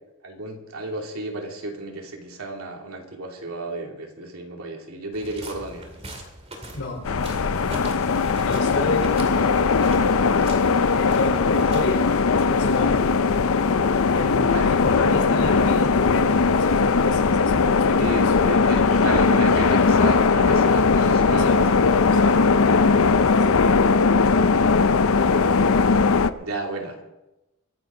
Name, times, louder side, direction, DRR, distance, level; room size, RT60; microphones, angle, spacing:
voice 1, 0.2-5.9 14.5-14.8 18.0-21.8 26.4-27.0, right 2 dB, 85° right, 1 dB, 2.8 m, -32 dB
sound 1, 5.1-12.8, right 1 dB, 30° right, 2.6 m, -41 dB
voice 2, 6.7-7.1 8.4-9.2 11.0-13.2 14.1-18.5 21.3-21.8 22.1-22.5 23.3-24.0, left 2 dB, 90° left, 2 dB, 4.0 m, -31 dB
sound 2, 7.0-26.3, left 4 dB, 70° left, 0.6 m, -19 dB
23.0 x 11.5 x 3.9 m, 0.98 s
head